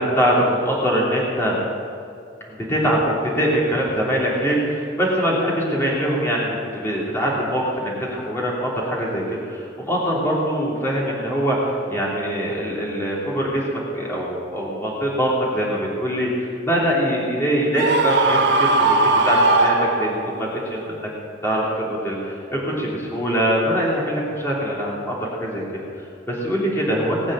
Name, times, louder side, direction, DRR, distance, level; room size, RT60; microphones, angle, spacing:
voice 1, 0.0-1.5 2.5-21.1 21.4-27.3, equal, 15° left, -5 dB, 3.2 m, -23 dB
Screaming, 17.8-20.4, right 3 dB, 70° right, 1.5 m, -18 dB
20.0 x 8.6 x 7.6 m, 2.4 s
head